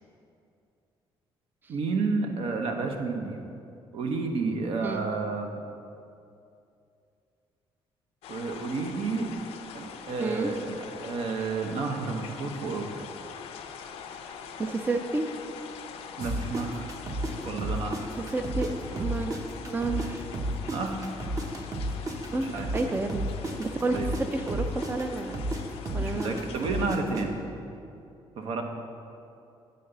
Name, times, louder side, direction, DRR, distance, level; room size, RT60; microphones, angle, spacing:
voice 1, 1.7-3.4 3.9-5.5 8.3-9.3 9.7-13.1 16.2-16.9 17.4-18.1 20.6-21.1 22.3-22.7 23.9-24.1 26.0-27.5 28.4-28.6, right 4 dB, 65° right, 4 dB, 0.8 m, -31 dB
sound 1, 8.2-27.0, left 7 dB, 80° left, 0.5 m, -43 dB
voice 2, 10.2-10.5 14.6-15.3 18.3-19.4 19.7-20.2 22.3-23.3 23.6-25.4 25.9-26.4, right 3 dB, 20° right, 6 dB, 0.4 m, -30 dB
sound 2, 16.2-18.7 19.0-22.8 23.1-27.2, right 1 dB, 35° right, 0.9 m, -32 dB
8.6 x 3.9 x 6.7 m, 2.6 s
cardioid pair, 100°, 10 cm